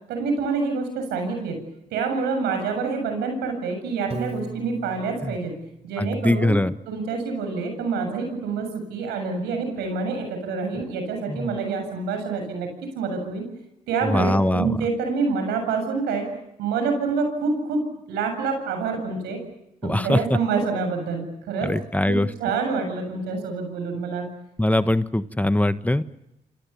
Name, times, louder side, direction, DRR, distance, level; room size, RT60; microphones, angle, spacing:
voice 1, 0.1-1.6 1.9-5.6 5.8-6.6 6.9-12.7 12.9-13.4 13.9-16.3 16.6-17.8 18.1-19.4 19.8-21.7 22.1-24.3, right 4 dB, 85° right, 5 dB, 7.5 m, -27 dB
Piano, 4.1-6.3, right 3 dB, 40° right, 5.1 m, -37 dB
voice 2, 6.0-6.7 11.3-11.6 14.0-14.8 19.8-20.4 21.6-22.3 24.6-26.0, left 1 dB, 10° left, 12 dB, 1.4 m, -22 dB
28.0 x 26.5 x 7.1 m, 0.85 s
supercardioid pair, 50°, 17 cm